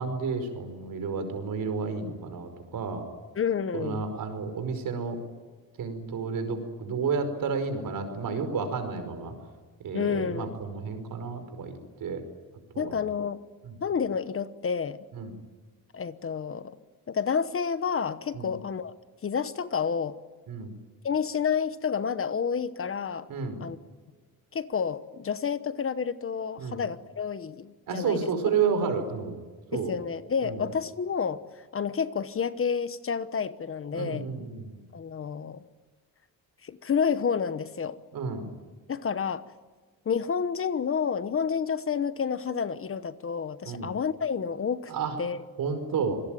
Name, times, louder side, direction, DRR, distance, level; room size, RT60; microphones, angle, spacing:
voice 1, 0.0-3.1 3.7-5.2 5.8-9.4 9.8-12.2 12.7-13.0 13.6-13.7 15.1-15.3 18.3-18.5 20.5-20.7 23.3-23.6 26.6-26.8 27.9-29.4 29.7-30.0 30.4-30.6 33.9-34.8 38.1-38.5 43.7-43.9 44.9-45.1 45.6-46.2, right 5 dB, 65° right, 8 dB, 5.2 m, -31 dB
voice 2, 3.4-4.0 9.9-10.6 12.8-13.4 13.8-15.0 15.9-16.8 17.1-18.9 19.2-20.2 21.0-23.3 23.6-23.8 24.5-28.3 29.7-34.3 34.9-35.6 36.6-38.0 38.9-39.4 40.0-44.9 45.2-45.4, left 6 dB, 35° left, 13 dB, 1.0 m, -29 dB
26.0 x 21.5 x 9.2 m, 1.4 s
cardioid pair, 130°, 36 cm